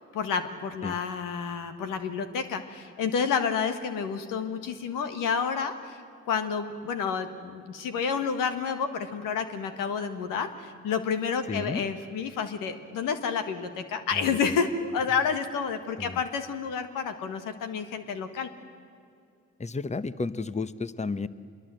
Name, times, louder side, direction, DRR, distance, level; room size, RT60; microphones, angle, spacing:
voice 1, 0.1-6.0 6.2-18.5, left 6 dB, 85° left, 8 dB, 1.6 m, -30 dB
voice 2, 11.5-11.8 14.1-14.6 16.0-16.2 19.6-21.3, left 3 dB, 20° left, 15 dB, 0.9 m, -32 dB
25.0 x 22.0 x 7.8 m, 2.4 s
supercardioid pair, 50°, 32 cm